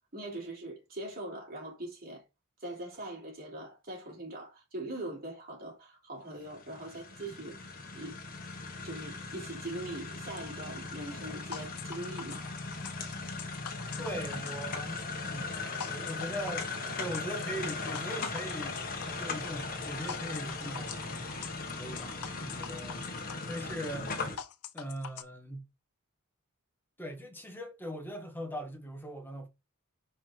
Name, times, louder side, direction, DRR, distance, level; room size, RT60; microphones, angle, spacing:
voice 1, 0.1-2.2 2.6-7.6 7.9-8.2 8.8-12.4, right 1 dB, 45° right, 3.7 m, -42 dB
sound 1, 6.4-24.4, left 3 dB, 40° left, 1.6 m, -38 dB
sound 2, 11.5-25.2, left 8 dB, 80° left, 0.7 m, -44 dB
voice 2, 14.0-16.7 17.0-18.8 19.2-21.4 21.7-23.1 23.5-24.1 24.7-25.6 27.0-29.5, equal, 10° left, 1.7 m, -40 dB
5.6 x 5.0 x 4.7 m
head